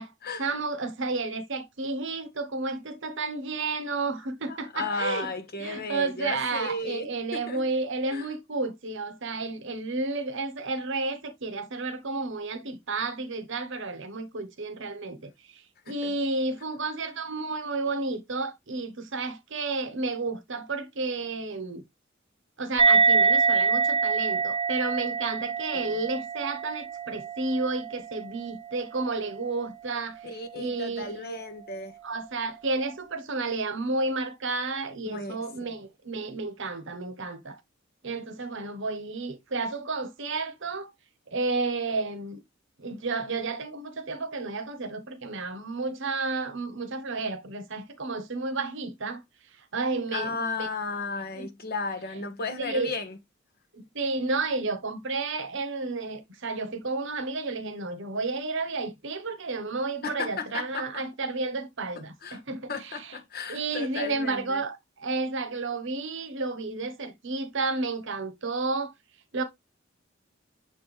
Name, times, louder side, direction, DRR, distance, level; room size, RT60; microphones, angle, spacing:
voice 1, 0.4-5.3 5.6-21.8 22.6-30.3 30.5-31.4 32.0-37.6 38.0-40.9 41.3-42.4 42.8-49.2 49.7-50.7 51.4-51.5 52.6-53.0 53.7-63.2 63.5-68.9 69.3-69.4, right 3 dB, 65° right, 1.1 m, -31 dB
voice 2, 4.5-7.6 8.1-8.3 16.0-16.1 25.7-26.0 30.2-32.0 35.0-35.4 50.1-53.2 60.0-61.0 62.2-62.4 62.7-64.6, left 3 dB, 50° left, 1.5 m, -34 dB
sound 1, 22.8-29.7, right 4 dB, 30° right, 0.5 m, -25 dB
6.6 x 4.6 x 3.3 m
head